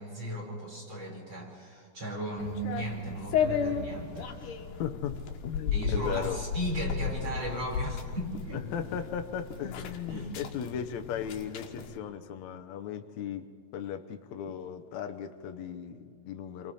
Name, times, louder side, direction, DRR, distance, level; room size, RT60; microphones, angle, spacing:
voice 1, 0.0-4.6 5.7-8.7 10.1-10.3, right 1 dB, 30° right, -1 dB, 4.6 m, -36 dB
sound 1, 2.4-12.0, left 7 dB, 65° left, 2.5 m, -34 dB
voice 2, 4.8-6.4 8.7-13.5 13.7-16.7, left 8 dB, 85° left, 6 dB, 1.6 m, -37 dB
29.5 x 24.5 x 4.2 m, 2.3 s
omnidirectional pair, 4.5 m